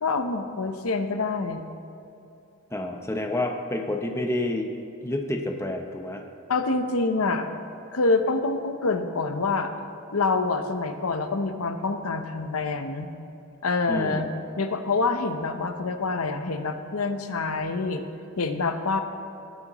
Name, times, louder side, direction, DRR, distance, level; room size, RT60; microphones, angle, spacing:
voice 1, 0.0-1.7 6.5-7.5 7.9-9.7 10.1-13.1 13.6-14.3 14.6-18.0 18.4-19.0, left 3 dB, 85° left, 8 dB, 0.8 m, -26 dB
voice 2, 2.7-4.7 5.0-6.2 13.9-14.2, left 1 dB, 10° left, 3 dB, 0.7 m, -29 dB
18.5 x 9.9 x 3.0 m, 2.7 s
head